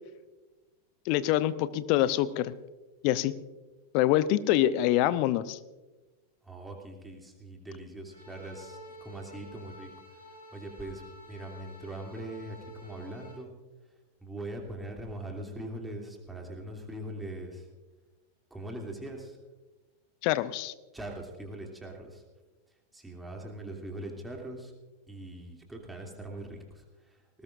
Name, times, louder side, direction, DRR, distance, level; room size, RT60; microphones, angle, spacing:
voice 1, 1.1-2.5 3.0-3.3 3.9-5.6 20.2-20.7, left 13 dB, 45° left, 15 dB, 0.7 m, -25 dB
voice 2, 6.4-10.2 10.5-13.5 14.2-17.7 18.5-19.4 20.9-22.2 22.9-24.7 25.1-27.4, right 1 dB, 5° right, 0 dB, 2.9 m, -41 dB
sound 1, 8.1-13.3, equal, 85° left, 5.5 m, -50 dB
20.0 x 19.0 x 2.6 m, 1.2 s
figure-of-eight pair, 90°, 0 cm